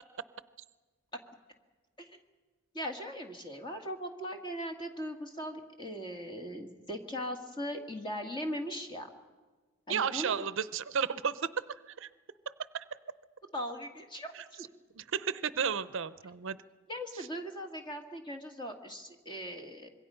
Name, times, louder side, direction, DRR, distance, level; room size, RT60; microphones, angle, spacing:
voice 1, 2.7-9.1 9.9-10.5 13.5-14.7 16.9-19.9, equal, 20° left, 4 dB, 1.9 m, -39 dB
voice 2, 9.9-12.1 12.5-13.0 14.3-14.4 15.0-16.6 17.1-17.3, right 7 dB, 60° right, 15 dB, 0.6 m, -33 dB
25.5 x 22.0 x 5.6 m, 1.3 s
head